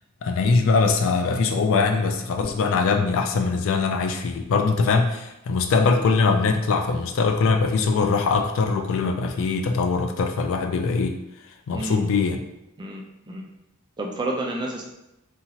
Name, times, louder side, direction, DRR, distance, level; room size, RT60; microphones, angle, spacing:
voice 1, 0.2-11.2 11.7-12.4, left 4 dB, 65° left, 5 dB, 0.3 m, -22 dB
voice 2, 12.8-13.4 14.0-14.9, right 2 dB, 20° right, 0 dB, 0.4 m, -30 dB
2.9 x 2.3 x 2.8 m, 0.88 s
head